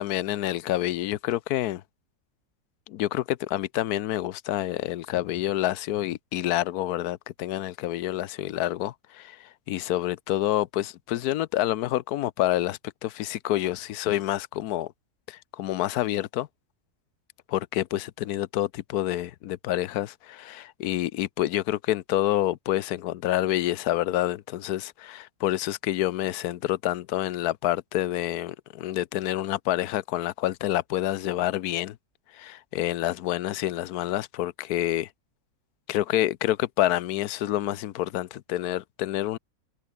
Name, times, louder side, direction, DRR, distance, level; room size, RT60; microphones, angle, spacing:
voice 1, 0.0-1.8 2.9-14.9 15.3-16.5 17.5-32.0 32.3-35.1 35.9-39.4, left 14 dB, 80° left, 1.2 m, -28 dB
omnidirectional pair, 1.6 m